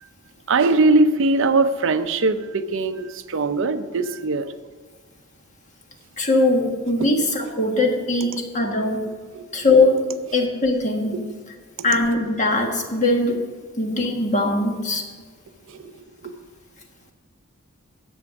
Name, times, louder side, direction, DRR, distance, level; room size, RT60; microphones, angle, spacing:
voice 1, 0.5-4.5 9.3-9.6 11.1-11.2 15.7-15.9 16.2-16.3, right 3 dB, 65° right, 10 dB, 0.6 m, -21 dB
voice 2, 6.2-9.0 9.5-10.0 10.3-11.2 11.8-13.4 13.8-15.1, left 2 dB, 35° left, 2 dB, 1.6 m, -20 dB
11.0 x 8.0 x 6.0 m, 1.5 s
head